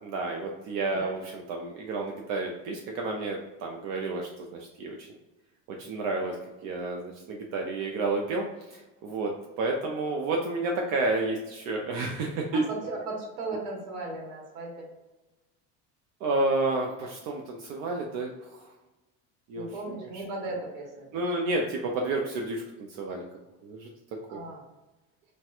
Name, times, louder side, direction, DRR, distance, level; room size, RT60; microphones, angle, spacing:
voice 1, 0.0-5.1 5.7-6.4 6.6-9.3 9.6-12.6 16.2-18.7 19.5-20.6 21.1-22.6 23.0-23.3 23.6-23.9 24.3-24.4, right 2 dB, 50° right, 1 dB, 0.4 m, -31 dB
voice 2, 12.5-14.9 19.6-21.2 24.3-24.6, right 2 dB, 85° right, 0 dB, 1.1 m, -36 dB
4.2 x 2.1 x 2.3 m, 1.1 s
cardioid pair, 165°, 34 cm